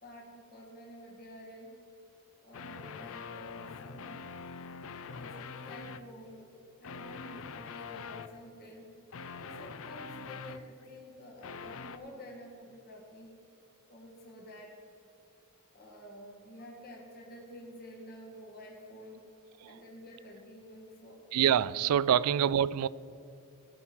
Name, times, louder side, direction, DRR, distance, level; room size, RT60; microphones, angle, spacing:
voice 1, 0.0-1.7 2.4-4.2 5.2-6.5 6.8-8.9 9.4-13.4 13.9-14.7 15.7-19.2 19.6-21.2, left 1 dB, 45° left, -2 dB, 1.7 m, -50 dB
sound 1, 2.5-6.1 6.8-8.4 9.1-10.8 11.4-12.0, left 5 dB, 65° left, 0.5 m, -44 dB
voice 2, 21.3-22.9, right 9 dB, 85° right, 19 dB, 0.3 m, -26 dB
16.0 x 6.0 x 4.6 m, 2.7 s
head